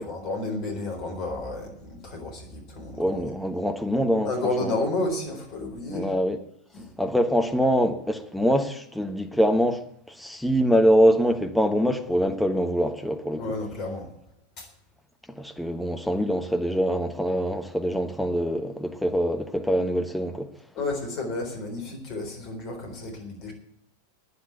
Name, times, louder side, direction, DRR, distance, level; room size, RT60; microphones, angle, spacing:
voice 1, 0.0-3.2 4.2-6.1 6.7-7.0 13.4-14.1 14.6-14.7 20.7-23.5, left 2 dB, 40° left, 3.9 m, -31 dB
voice 2, 3.0-4.3 4.6-4.8 5.9-6.4 7.0-13.4 15.3-20.5, equal, ahead, 1.2 m, -24 dB
9.9 x 9.7 x 9.0 m
figure-of-eight pair, 90°, 0 cm